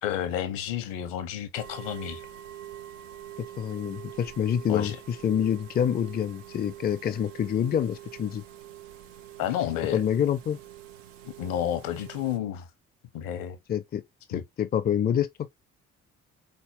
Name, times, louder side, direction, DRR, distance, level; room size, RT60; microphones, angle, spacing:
voice 1, 0.0-2.2 4.7-5.0 9.4-10.0 11.2-12.7 13.1-13.6 14.3-14.4, left 10 dB, 60° left, 1.0 m, -31 dB
sound 1, 1.5-12.4, right 11 dB, 80° right, 0.5 m, -45 dB
voice 2, 3.6-8.4 9.9-10.6 13.7-14.0 14.3-15.5, left 9 dB, 25° left, 0.5 m, -27 dB
4.1 x 3.6 x 2.8 m
figure-of-eight pair, 40°, 37 cm